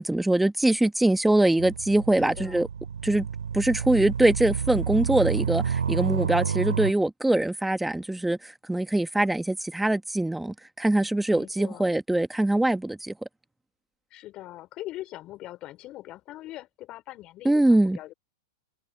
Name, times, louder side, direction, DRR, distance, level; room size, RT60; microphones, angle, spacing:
voice 1, 0.0-2.7 3.0-3.3 3.5-13.1 17.4-18.0, right 1 dB, 5° right, 1.6 m, -23 dB
sound 1, 1.6-6.9, right 7 dB, 85° right, 3.2 m, -29 dB
voice 2, 2.1-2.7 11.3-11.9 14.1-18.1, left 15 dB, 35° left, 4.5 m, -42 dB
hypercardioid pair, 110°, 2 cm